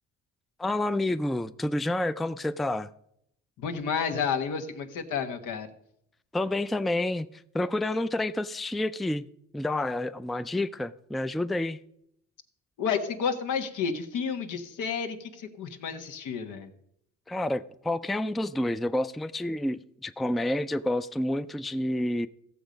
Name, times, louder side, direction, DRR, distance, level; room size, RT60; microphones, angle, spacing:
voice 1, 0.6-2.9 6.3-9.3 9.5-11.8 17.3-22.3, left 1 dB, ahead, 0.3 m, -29 dB
voice 2, 3.6-5.7 12.8-16.7, left 6 dB, 85° left, 1.3 m, -31 dB
15.5 x 7.0 x 5.1 m
cardioid pair, 90°, 30 cm